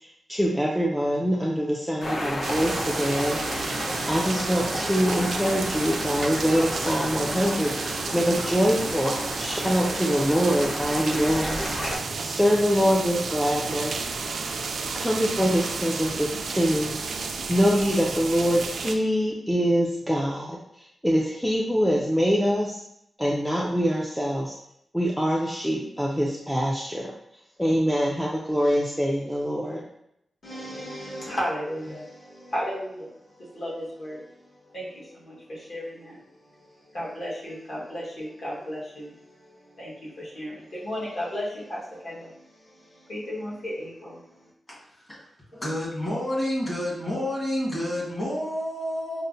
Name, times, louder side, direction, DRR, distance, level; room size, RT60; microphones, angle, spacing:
voice 1, 0.0-11.8 12.2-13.9 14.9-17.0 17.5-22.8 23.2-24.6 24.9-27.1 27.6-29.8, equal, ahead, -3 dB, 0.3 m, -24 dB
sound 1, 2.0-12.0, left 1 dB, 75° left, 0.8 m, -32 dB
sound 2, 2.4-18.9, right 4 dB, 75° right, 0.3 m, -32 dB
voice 2, 30.4-34.3 34.7-36.2 36.9-44.2, equal, 45° left, -6 dB, 1.3 m, -35 dB
voice 3, 45.5-49.2, left 1 dB, 20° left, -7 dB, 1.4 m, -29 dB
5.4 x 2.0 x 2.6 m, 0.77 s
wide cardioid pair, 170°, 0 cm